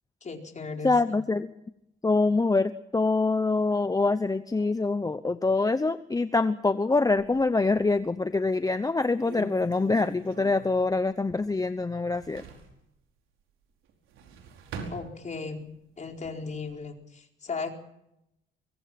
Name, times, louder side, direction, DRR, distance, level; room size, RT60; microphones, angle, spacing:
voice 1, 0.2-1.2 14.9-15.7 16.0-17.7, left 4 dB, 35° left, 2 dB, 4.6 m, -36 dB
voice 2, 0.8-1.5 2.0-12.4, left 3 dB, 20° left, 12 dB, 0.8 m, -25 dB
sound 1, 7.1-8.0 8.5-8.6 9.0-11.7 11.9-12.8 13.9-15.7 16.1-16.7, right 4 dB, 90° right, 4.8 m, -44 dB
24.0 x 23.5 x 6.0 m, 0.82 s
cardioid pair, 90°, 20 cm